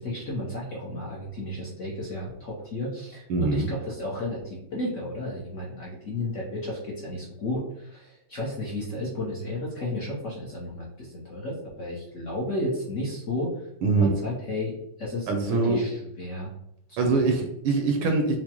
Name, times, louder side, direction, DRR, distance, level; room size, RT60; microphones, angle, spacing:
voice 1, 0.0-13.5 13.9-16.5 16.9-17.3, left 1 dB, 65° left, -5 dB, 0.7 m, -33 dB
voice 2, 3.3-3.7 13.8-14.1 15.3-15.8 17.0-18.4, right 3 dB, 80° right, 3 dB, 1.4 m, -23 dB
4.7 x 2.0 x 2.8 m, 0.76 s
omnidirectional pair, 2.4 m